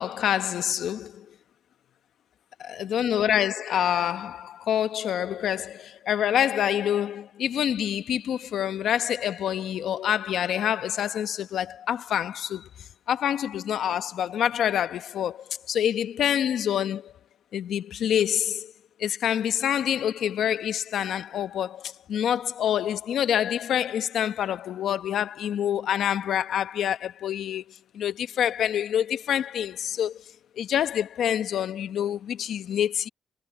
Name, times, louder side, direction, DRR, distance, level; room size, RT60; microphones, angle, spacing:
voice 1, 0.0-1.3 2.7-12.7 13.1-17.1 17.5-18.7 19.0-30.2 30.6-33.1, left 10 dB, 70° left, 1.2 m, -27 dB
cardioid pair, 90°, 0 cm